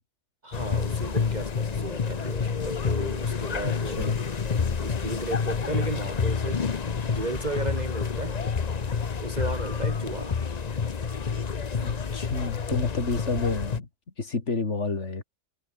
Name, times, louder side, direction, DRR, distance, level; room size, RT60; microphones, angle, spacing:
voice 1, 0.4-4.1 4.7-6.6 7.1-8.4 9.2-10.4, right 2 dB, 40° right, 2.3 m, -34 dB
sound 1, 0.5-13.8, left 5 dB, 40° left, 1.0 m, -29 dB
voice 2, 3.6-4.2 11.8-13.9 14.2-15.2, left 4 dB, 85° left, 2.9 m, -30 dB
omnidirectional pair, 1.2 m